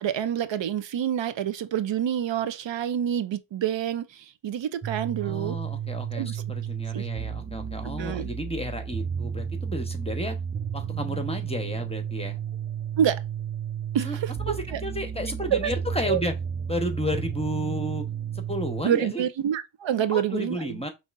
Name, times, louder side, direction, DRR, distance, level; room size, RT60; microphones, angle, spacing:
voice 1, 0.0-5.6 6.1-6.3 6.9-7.0 8.0-8.3 13.0-13.2 13.9-14.8 15.5-15.7 16.1-16.2 18.8-20.8, right 10 dB, 70° right, 0.6 m, -27 dB
sound 1, 4.8-18.8, right 8 dB, 20° right, 0.4 m, -32 dB
voice 2, 5.2-10.4 10.7-12.4 14.0-14.2 14.5-14.6 14.8-16.3 16.7-18.0 18.3-19.2 19.9-20.9, left 1 dB, 15° left, 1.0 m, -32 dB
5.2 x 3.2 x 2.5 m
cardioid pair, 55°, 46 cm